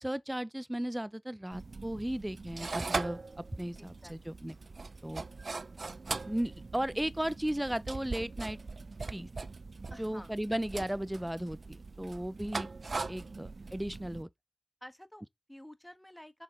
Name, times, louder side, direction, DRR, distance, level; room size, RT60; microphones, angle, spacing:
voice 1, 0.0-4.5 5.0-5.2 6.3-8.6 9.1-9.3 10.0-12.7 13.1-14.3, right 1 dB, 10° right, 0.6 m, -35 dB
sound 1, 1.5-14.2, right 3 dB, 50° right, 0.5 m, -41 dB
voice 2, 3.8-4.4 9.9-10.3 14.8-16.4, left 1 dB, 10° left, 1.5 m, -51 dB
6.9 x 6.8 x 5.3 m
wide cardioid pair, 105°, 0 cm